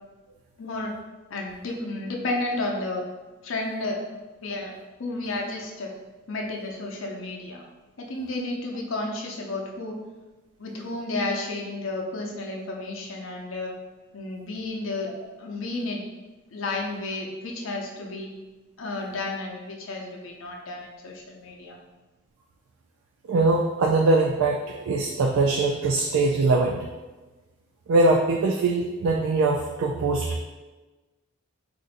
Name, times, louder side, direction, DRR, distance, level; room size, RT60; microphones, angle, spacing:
voice 1, 0.6-0.9 1.3-3.1 3.4-4.7 5.0-5.9 6.3-7.6 8.0-10.0 10.6-13.7 14.1-15.1 15.4-16.0 16.5-18.3 18.8-21.8, left 2 dB, 75° left, 0 dB, 0.6 m, -32 dB
voice 2, 23.3-26.9 27.9-30.4, right 3 dB, 90° right, 1 dB, 0.3 m, -22 dB
2.6 x 2.5 x 4.0 m, 1.2 s
head